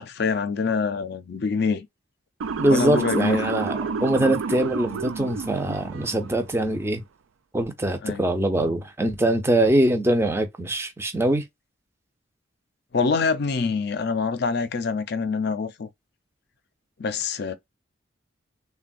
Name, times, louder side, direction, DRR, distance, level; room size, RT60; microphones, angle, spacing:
voice 1, 0.0-1.9 2.7-3.5 8.0-8.2 12.9-15.9 17.0-17.5, left 5 dB, 55° left, 0.5 m, -25 dB
Motor vehicle (road) / Siren, 2.4-6.5, right 5 dB, 90° right, 0.4 m, -30 dB
voice 2, 2.6-7.0 7.5-11.4, right 1 dB, 15° right, 0.5 m, -23 dB
3.4 x 2.2 x 2.3 m
head